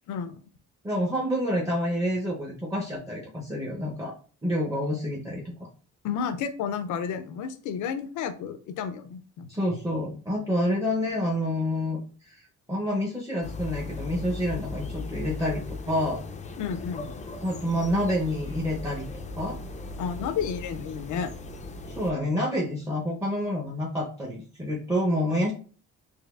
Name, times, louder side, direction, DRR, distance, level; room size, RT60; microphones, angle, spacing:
voice 1, 0.1-0.4 6.0-9.5 16.6-17.2 20.0-21.3, left 7 dB, 80° left, 10 dB, 0.5 m, -31 dB
voice 2, 0.8-4.1 4.4-5.5 9.5-16.2 17.4-19.1 19.4-19.6 21.9-25.5, equal, 10° right, -2 dB, 0.7 m, -28 dB
sound 1, 13.4-22.1, left 3 dB, 25° left, 0.4 m, -38 dB
4.1 x 2.6 x 2.4 m, 0.41 s
cardioid pair, 90°, 30 cm